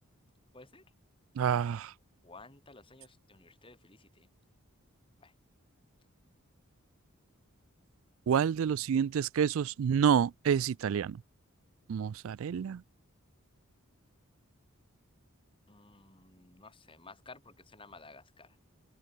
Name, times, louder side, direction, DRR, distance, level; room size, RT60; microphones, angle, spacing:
voice 1, 0.5-0.8 2.2-4.3 5.2-5.3 15.7-18.5, left 3 dB, 25° left, 4.9 m, -54 dB
voice 2, 1.4-1.9 8.3-11.2 11.9-12.8, right 7 dB, 70° right, 0.3 m, -28 dB
open air
head